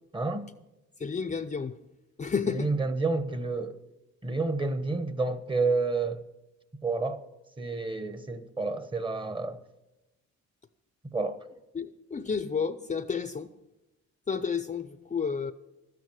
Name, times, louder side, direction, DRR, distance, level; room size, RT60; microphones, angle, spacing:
voice 1, 0.1-0.5 2.5-3.8 4.2-6.2 6.8-7.2 7.6-9.6 11.1-11.4, right 3 dB, 15° right, 1.0 m, -29 dB
voice 2, 1.0-1.7 2.2-2.7 11.7-13.5 14.3-15.5, left 6 dB, 25° left, 0.6 m, -31 dB
12.5 x 9.5 x 7.7 m
cardioid pair, 90°, 30 cm